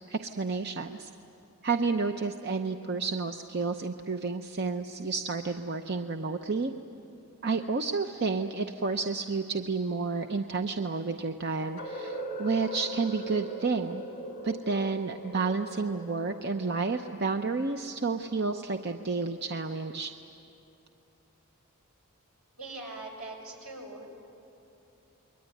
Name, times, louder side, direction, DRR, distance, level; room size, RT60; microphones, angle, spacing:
voice 1, 0.1-1.1 1.6-6.7 7.4-14.0 14.4-20.1, right 4 dB, 50° right, 6 dB, 0.7 m, -30 dB
sound 1, 11.8-17.6, right 1 dB, 60° left, 2.4 m, -40 dB
voice 2, 22.6-24.1, right 2 dB, 80° right, 0 dB, 6.5 m, -41 dB
28.5 x 22.5 x 9.2 m, 2.9 s
head